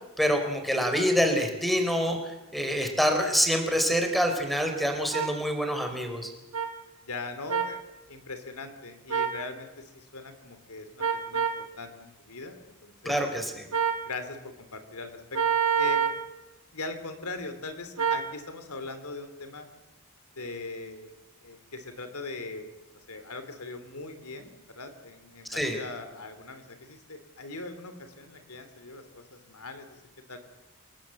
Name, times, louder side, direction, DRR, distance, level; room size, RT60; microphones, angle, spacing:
voice 1, 0.2-2.2 2.5-6.3 13.0-13.7 25.5-25.8, equal, ahead, 5 dB, 4.0 m, -26 dB
sound 1, 5.1-5.3 6.5-6.7 7.5-7.7 9.1-9.4 11.0-11.6 13.7-14.0 15.3-16.2 18.0-18.3, right 7 dB, 80° right, 2.9 m, -26 dB
voice 2, 7.0-7.8 8.1-13.2 14.0-15.4 15.8-16.0 16.7-19.7 20.4-21.1 21.4-22.7 23.1-29.9 30.3-30.4, left 3 dB, 75° left, 9 dB, 3.0 m, -40 dB
29.0 x 18.5 x 7.7 m, 0.97 s
head